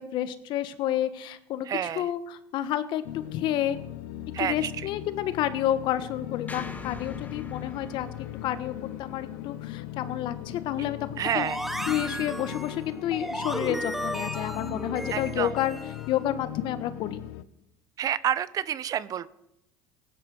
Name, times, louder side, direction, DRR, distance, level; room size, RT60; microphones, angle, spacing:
voice 1, 0.0-1.7 1.9-3.0 3.3-3.8 4.4-8.7 9.0-11.5 11.9-15.8 16.1-17.3, left 11 dB, 60° left, 13 dB, 1.2 m, -30 dB
voice 2, 1.6-2.1 4.3-4.9 11.2-11.6 15.1-15.5 18.0-19.3, right 10 dB, 40° right, 17 dB, 0.7 m, -29 dB
sound 1, 3.0-17.4, left 14 dB, 80° left, 0.8 m, -39 dB
sound 2, 6.5-10.8, left 3 dB, 15° left, 1.6 m, -45 dB
sound 3, 11.2-16.1, equal, 5° right, 0.9 m, -34 dB
16.5 x 9.8 x 6.1 m, 0.84 s
supercardioid pair, 105°, 9 cm